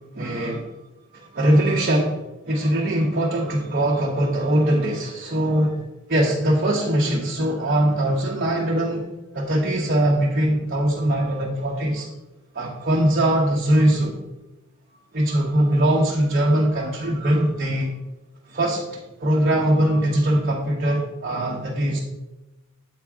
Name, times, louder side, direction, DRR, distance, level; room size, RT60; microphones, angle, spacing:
voice 1, 0.1-0.7 1.1-9.0 9.3-12.1 12.5-14.2 15.1-17.9 18.5-22.0, right 1 dB, 40° right, -3 dB, 0.9 m, -21 dB
8.0 x 4.6 x 3.6 m, 1.0 s
head